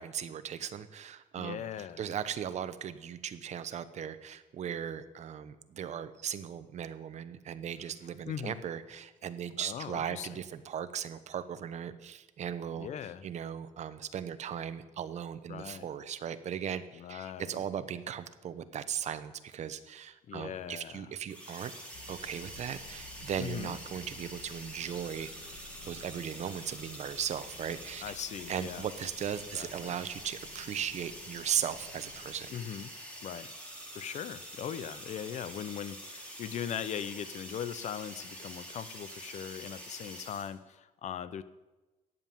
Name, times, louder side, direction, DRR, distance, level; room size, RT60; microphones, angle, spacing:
voice 1, 0.0-1.6 2.0-12.9 13.2-21.7 22.1-28.0 28.5-32.5, right 9 dB, 55° right, 12 dB, 0.9 m, -37 dB
voice 2, 1.4-2.0 8.3-8.6 9.6-10.3 12.7-13.2 15.5-15.9 16.9-17.6 20.3-21.1 23.4-23.8 28.0-28.9 29.5-29.9 32.5-32.9 33.2-33.5 33.9-41.4, left 9 dB, 55° left, 14 dB, 0.7 m, -40 dB
sound 1, 21.3-40.5, equal, 10° left, 3.8 m, -46 dB
sound 2, 21.9-32.6, left 4 dB, 75° left, 2.0 m, -55 dB
13.5 x 9.6 x 7.4 m, 1.1 s
cardioid pair, 135°, 14 cm